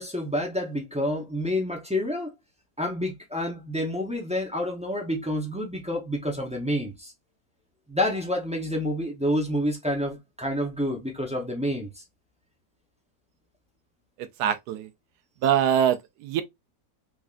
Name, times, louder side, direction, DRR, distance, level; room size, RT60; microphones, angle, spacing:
voice 1, 0.0-2.3 2.8-7.1 7.9-12.0, left 1 dB, 10° right, 0.4 m, -28 dB
voice 2, 14.4-14.9 15.4-16.4, right 9 dB, 75° right, 1.1 m, -23 dB
3.5 x 3.5 x 2.5 m
omnidirectional pair, 1.8 m